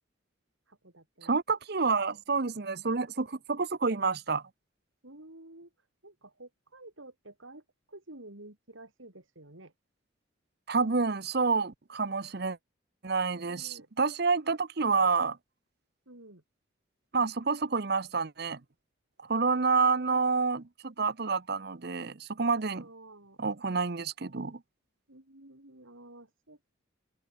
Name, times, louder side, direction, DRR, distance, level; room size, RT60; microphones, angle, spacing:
voice 1, 0.7-1.4 5.0-9.7 13.3-13.9 14.4-14.6 16.1-16.4 19.3-20.2 22.7-23.4 25.1-26.8, right 2 dB, 75° right, 4.1 m, -51 dB
voice 2, 1.2-4.4 10.7-12.6 13.0-15.4 17.1-18.6 19.2-22.8 23.4-24.6, right 4 dB, 50° right, 0.8 m, -28 dB
head